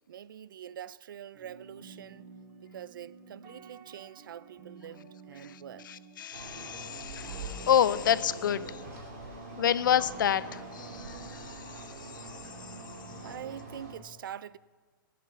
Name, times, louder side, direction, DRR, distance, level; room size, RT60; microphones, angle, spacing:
voice 1, 0.1-2.3 2.6-5.9 13.2-14.6, right 10 dB, 65° right, 0.4 m, -44 dB
sound 1, 1.3-13.5, right 5 dB, 15° right, 1.6 m, -51 dB
voice 2, 5.4-8.8 9.6-12.8, left 9 dB, 65° left, 0.5 m, -29 dB
sound 2, 6.3-13.9, right 2 dB, 40° right, 2.3 m, -44 dB
16.0 x 8.5 x 7.0 m
hypercardioid pair, 180°, 12 cm